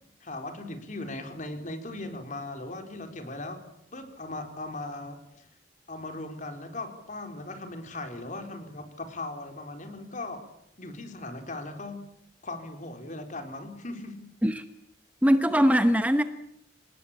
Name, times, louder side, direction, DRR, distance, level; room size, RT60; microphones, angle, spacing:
voice 1, 0.2-3.6 3.9-5.5 5.9-10.4 10.8-12.0 12.4-14.2, left 2 dB, 40° left, 6 dB, 4.2 m, -38 dB
voice 2, 15.2-16.2, equal, 10° right, 9 dB, 1.0 m, -21 dB
27.0 x 19.5 x 8.6 m, 0.73 s
head